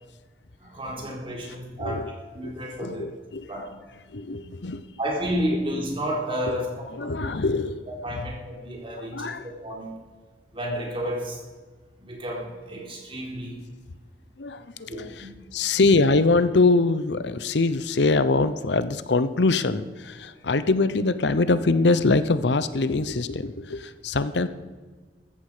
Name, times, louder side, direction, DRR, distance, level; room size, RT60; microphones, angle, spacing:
voice 1, 0.6-2.0 2.3-3.0 3.5-3.8 4.3-4.4 5.0-7.2 8.0-9.9 10.5-11.4 12.0-13.5 14.9-15.3 15.6-15.8, equal, 30° right, -1 dB, 3.9 m, -31 dB
voice 2, 1.8-2.1 2.4-2.5 2.8-3.4 4.1-4.8 6.5-6.6 6.9-7.8 9.0-9.5 14.4-24.5, left 3 dB, 75° left, 13 dB, 0.7 m, -23 dB
14.5 x 14.0 x 5.0 m, 1.4 s
head